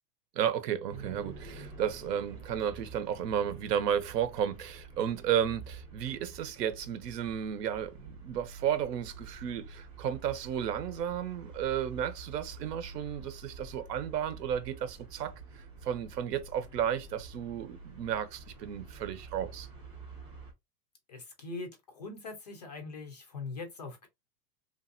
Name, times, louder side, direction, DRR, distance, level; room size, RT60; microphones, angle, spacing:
voice 1, 0.3-19.7, right 9 dB, 75° right, 0.8 m, -33 dB
sound 1, 0.9-20.5, right 4 dB, 10° right, 0.6 m, -48 dB
voice 2, 21.1-24.1, left 3 dB, 30° left, 0.3 m, -42 dB
2.9 x 2.5 x 2.5 m
supercardioid pair, 160°, 49 cm